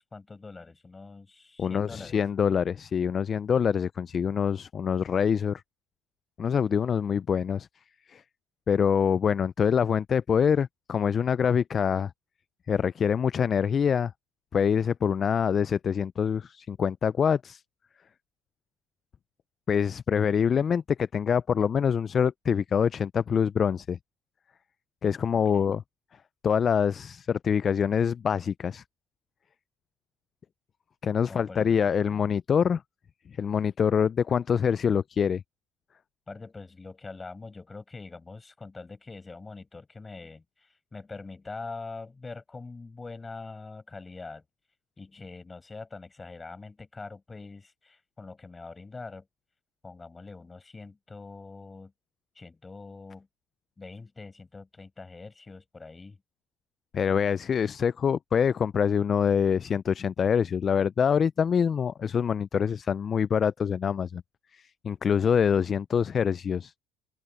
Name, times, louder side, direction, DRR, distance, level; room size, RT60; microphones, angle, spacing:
voice 1, 0.0-2.2 25.3-25.7 31.3-32.2 36.3-44.4 45.0-49.3 49.8-51.9 52.4-53.3 53.8-56.2, left 3 dB, 15° left, 7.0 m, -44 dB
voice 2, 1.6-5.6 6.4-7.7 8.1-8.2 8.7-12.1 12.7-14.1 14.5-17.6 19.7-24.0 25.0-25.8 26.4-28.8 31.0-32.8 33.4-35.4 56.9-64.2 64.5-66.7, left 7 dB, 35° left, 0.3 m, -25 dB
open air
cardioid pair, 115°, 0 cm